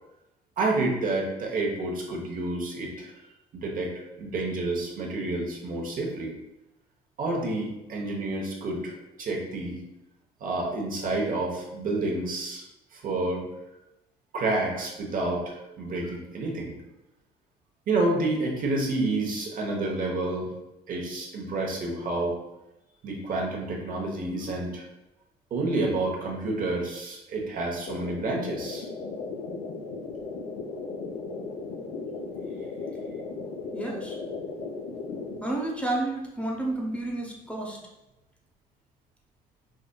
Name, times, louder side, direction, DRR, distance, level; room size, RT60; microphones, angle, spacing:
voice 1, 0.6-3.1 3.5-6.3 7.2-9.8 10.4-12.6 12.9-13.4 14.3-16.7 17.9-20.5 20.9-22.4 23.0-24.9 25.5-28.9, right 2 dB, 55° right, 0 dB, 0.9 m, -29 dB
sound 1, 27.9-35.4, left 4 dB, 80° left, 0.7 m, -36 dB
voice 2, 33.7-34.2 35.4-37.8, right 2 dB, 5° left, -2 dB, 0.7 m, -30 dB
4.7 x 2.6 x 2.2 m, 0.92 s
cardioid pair, 110°, 17 cm